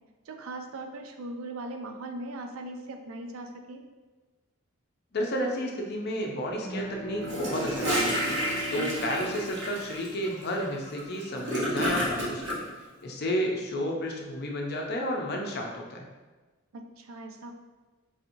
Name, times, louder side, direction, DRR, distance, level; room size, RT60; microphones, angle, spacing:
voice 1, 0.3-3.8 8.7-8.9 16.7-17.5, right 2 dB, 75° right, 4 dB, 0.4 m, -39 dB
voice 2, 5.1-8.4 8.7-12.6 13.0-16.1, equal, 50° left, 1 dB, 0.6 m, -31 dB
sound 1, 6.5-10.5, right 1 dB, 5° right, 1.0 m, -39 dB
Gurgling / Toilet flush, 7.2-12.6, equal, 55° right, 1.0 m, -30 dB
4.8 x 2.8 x 2.6 m, 1.3 s
head